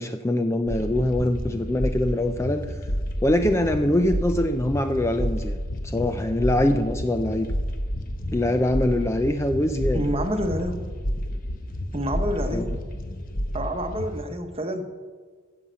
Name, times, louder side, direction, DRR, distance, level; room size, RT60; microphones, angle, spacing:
voice 1, 0.0-2.8 3.2-5.6 5.8-7.5 8.3-10.0 12.5-12.7, left 1 dB, 15° left, 7 dB, 0.4 m, -23 dB
sound 1, 0.7-14.2, equal, 40° left, 1.1 m, -30 dB
voice 2, 9.9-10.8 11.9-12.9 13.5-14.8, equal, 30° right, 6 dB, 1.0 m, -28 dB
13.5 x 5.6 x 8.0 m, 1.5 s
head